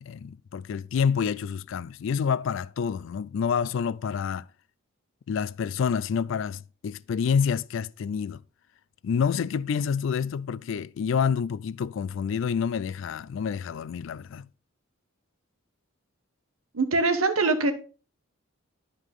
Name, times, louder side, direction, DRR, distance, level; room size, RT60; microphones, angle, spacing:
voice 1, 0.0-4.5 5.3-8.4 9.0-14.4, left 6 dB, 60° left, 0.3 m, -28 dB
voice 2, 16.7-17.7, right 3 dB, 90° right, 1.2 m, -23 dB
11.0 x 5.0 x 3.6 m
head